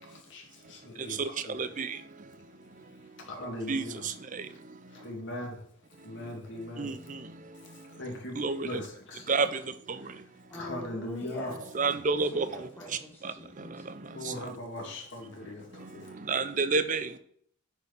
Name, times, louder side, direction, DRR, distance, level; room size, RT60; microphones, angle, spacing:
voice 1, 0.0-1.7 2.9-4.0 4.5-4.6 4.9-5.6 6.0-7.0 7.6-9.3 10.0-10.2 10.5-11.6 14.0-16.2, left 1 dB, 55° left, 1 dB, 2.3 m, -40 dB
voice 2, 1.5-2.0 3.7-4.4 6.8-7.2 8.4-8.8 9.3-9.5 11.7-12.5 13.2-13.3 14.3-14.4 16.3-17.2, right 4 dB, 35° right, 12 dB, 0.5 m, -29 dB
voice 3, 10.5-13.9, equal, 10° left, -1 dB, 2.0 m, -45 dB
9.5 x 4.5 x 5.3 m, 0.63 s
head